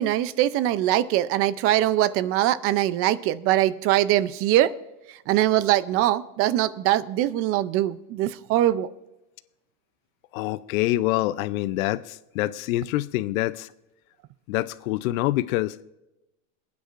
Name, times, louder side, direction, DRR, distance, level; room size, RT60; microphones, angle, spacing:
voice 1, 0.0-4.7 5.1-8.9, right 13 dB, 35° right, 0.4 m, -22 dB
voice 2, 10.3-13.7 14.5-15.8, left 16 dB, 75° left, 0.6 m, -26 dB
27.0 x 9.4 x 2.5 m
supercardioid pair, 145°, 42 cm